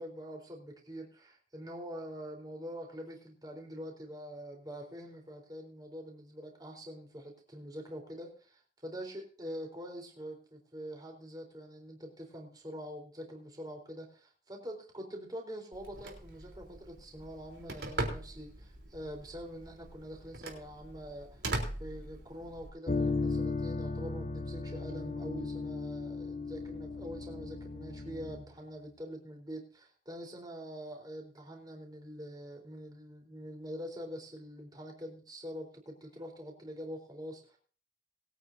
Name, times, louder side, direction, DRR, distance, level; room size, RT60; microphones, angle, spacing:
voice 1, 0.0-21.4 21.8-37.6, equal, 25° right, 2 dB, 4.1 m, -45 dB
Telephone, 15.7-22.7, right 2 dB, 80° right, 3.8 m, -41 dB
sound 1, 22.9-28.5, left 3 dB, 40° left, 1.0 m, -36 dB
22.5 x 9.3 x 2.8 m, 0.41 s
head